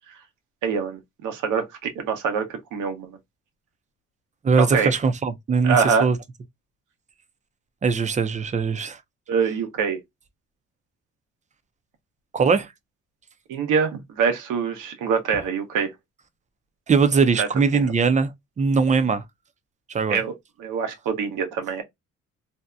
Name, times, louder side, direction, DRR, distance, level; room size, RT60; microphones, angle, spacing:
voice 1, 0.6-2.5 2.7-3.2 4.6-4.9 5.6-6.1 9.3-10.0 13.5-15.9 17.4-17.5 17.7-17.9 20.1-20.3 20.6-21.8, right 6 dB, 85° right, 0.8 m, -24 dB
voice 2, 4.4-6.2 7.8-9.0 12.3-12.7 16.9-18.3 18.6-19.2 19.9-20.2, right 5 dB, 25° right, 0.4 m, -21 dB
2.7 x 2.1 x 2.3 m
cardioid pair, 90°, 30 cm